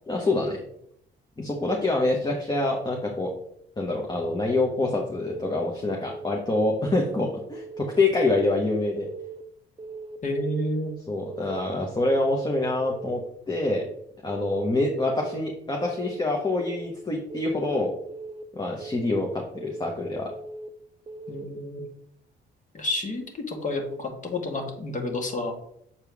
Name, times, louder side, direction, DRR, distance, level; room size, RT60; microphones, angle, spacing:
voice 1, 0.1-0.6 1.4-3.3 3.8-9.1 11.1-13.2 13.5-13.8 14.2-17.9 18.5-20.3, left 2 dB, 20° left, 0 dB, 1.2 m, -26 dB
Keyboard (musical) / Alarm, 5.3-5.7 6.0-6.4 6.8-7.2 7.5-7.9 8.3-8.7 9.0-9.4 9.8-10.2 10.5-10.9 11.3-11.7 12.0-12.4 12.8-13.2 13.5-13.9 14.3-14.7 15.0-15.4 15.8-16.2 16.5-16.9 17.3-17.7 18.1-18.4 18.8-19.2 19.6-19.9 20.3-20.7 21.1-21.4, right 4 dB, 30° right, 0.6 m, -40 dB
voice 2, 10.2-10.9 21.3-21.9 22.7-25.5, left 1 dB, 40° left, 3 dB, 1.7 m, -30 dB
7.2 x 4.4 x 3.5 m, 0.71 s
cardioid pair, 90°, 20 cm